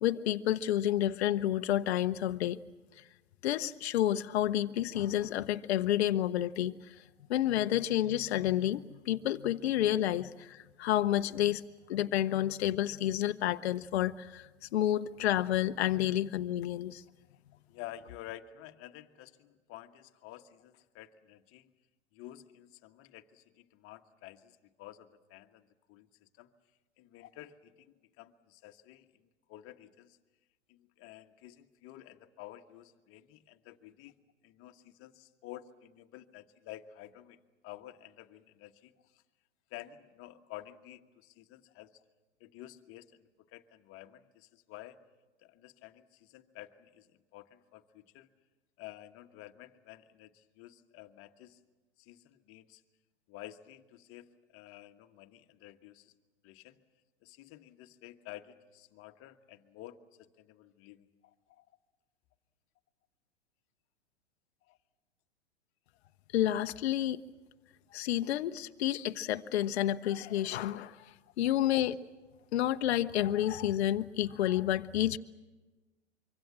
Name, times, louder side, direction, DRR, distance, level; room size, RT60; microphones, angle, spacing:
voice 1, 0.0-2.6 3.4-7.0 7.3-11.6 11.9-17.0 66.3-67.2 67.9-71.0 71.4-72.0 72.5-75.2, left 12 dB, 60° left, 9 dB, 0.9 m, -30 dB
voice 2, 17.7-21.7 22.1-26.5 27.0-29.1 29.5-30.2 30.7-34.1 34.4-37.4 37.6-39.2 39.7-42.0 42.4-45.0 45.4-47.1 47.3-48.3 48.8-51.6 52.0-52.8 53.3-56.1 56.4-56.8 57.2-61.7 64.7-64.8, left 14 dB, 35° left, 7 dB, 1.5 m, -51 dB
25.0 x 24.5 x 7.4 m, 1.2 s
hypercardioid pair, 105°, 36 cm